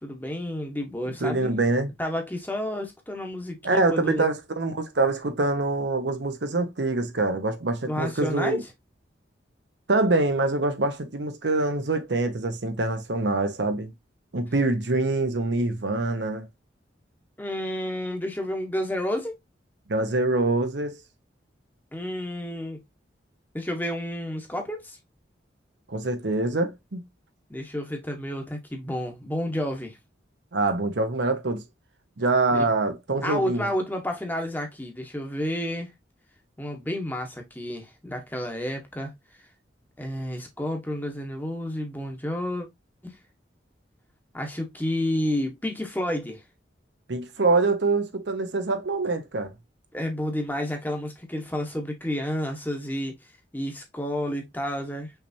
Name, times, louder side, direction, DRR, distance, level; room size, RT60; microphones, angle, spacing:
voice 1, 0.0-1.5 2.0-4.3 7.9-8.6 17.4-19.4 21.9-22.8 23.5-25.0 27.5-30.0 32.5-32.7 33.2-35.9 36.6-39.1 40.0-42.7 43.0-43.2 44.3-46.4 49.9-55.1, left 1 dB, 10° left, 1.1 m, -30 dB
voice 2, 1.2-1.9 3.6-8.6 9.9-13.9 14.3-16.5 19.9-21.0 25.9-27.0 30.5-31.6 32.2-33.7 47.1-49.5, right 2 dB, 70° right, 0.9 m, -25 dB
5.7 x 3.4 x 2.7 m
head